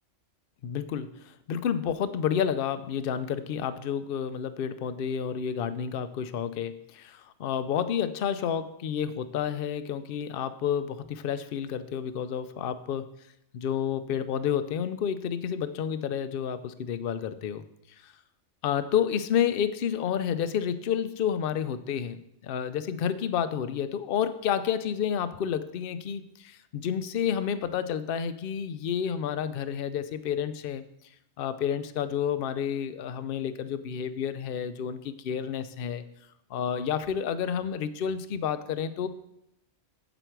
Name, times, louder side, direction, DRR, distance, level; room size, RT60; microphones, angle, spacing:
voice 1, 0.6-13.1 13.5-17.6 18.0-18.1 18.6-30.8 31.4-36.0 36.5-39.1, left 8 dB, 55° left, 12 dB, 0.7 m, -30 dB
8.1 x 7.9 x 4.6 m, 0.80 s
omnidirectional pair, 1.3 m